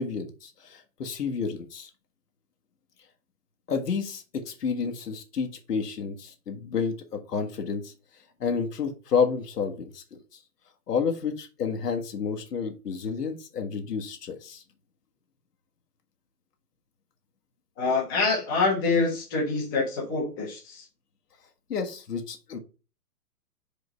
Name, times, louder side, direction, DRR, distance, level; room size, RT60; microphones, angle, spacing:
voice 1, 0.0-1.9 3.7-7.9 8.4-10.2 10.9-14.6 21.7-22.6, left 5 dB, 80° left, 3 dB, 1.6 m, -30 dB
voice 2, 17.8-20.8, left 3 dB, 15° left, -3 dB, 1.1 m, -26 dB
5.2 x 3.8 x 5.1 m, 0.33 s
hypercardioid pair, 175°, 47 cm